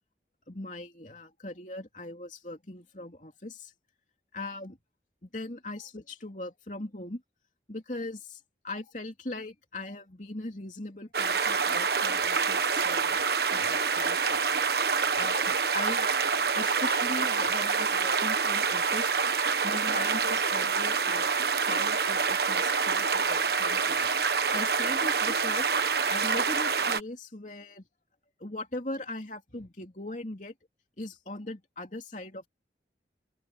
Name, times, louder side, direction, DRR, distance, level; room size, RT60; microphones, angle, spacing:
voice 1, 0.5-3.7 4.3-4.8 5.3-7.2 7.7-13.2 13.5-14.4 14.7-14.8 15.2-16.1 16.5-19.1 19.6-24.1 24.5-25.7 26.1-27.8 28.4-30.5 31.0-32.5, left 2 dB, 45° left, 3.3 m, -40 dB
sound 1, 11.1-27.0, right 5 dB, 65° right, 1.3 m, -27 dB
open air
head